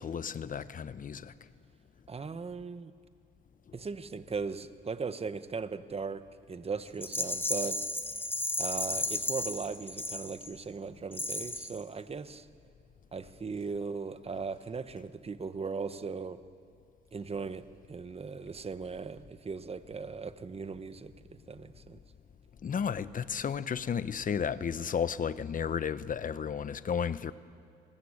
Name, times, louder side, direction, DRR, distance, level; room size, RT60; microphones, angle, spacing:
voice 1, 0.0-1.3 22.6-27.3, left 7 dB, 45° left, 0.8 m, -33 dB
voice 2, 2.1-2.9 3.7-7.8 8.6-12.5 13.1-16.4 17.1-22.0, right 5 dB, 30° right, 1.1 m, -38 dB
Rattle, 7.0-10.6 11.1-11.8, left 2 dB, 10° left, 1.3 m, -34 dB
29.0 x 20.0 x 8.7 m
cardioid pair, 95°, 20 cm